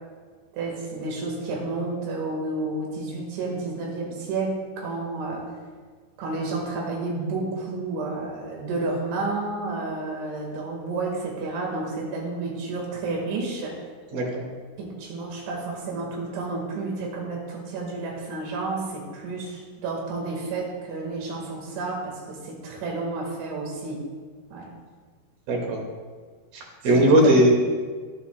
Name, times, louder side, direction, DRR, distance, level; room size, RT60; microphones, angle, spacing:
voice 1, 0.5-5.5 6.2-13.8 14.8-24.0 24.5-24.7 27.0-27.4, right 3 dB, 80° right, 0 dB, 4.3 m, -31 dB
voice 2, 14.1-14.5 25.5-25.8 26.5-27.5, right 1 dB, 60° right, -1 dB, 3.9 m, -19 dB
23.0 x 9.8 x 2.3 m, 1.5 s
omnidirectional pair, 5.2 m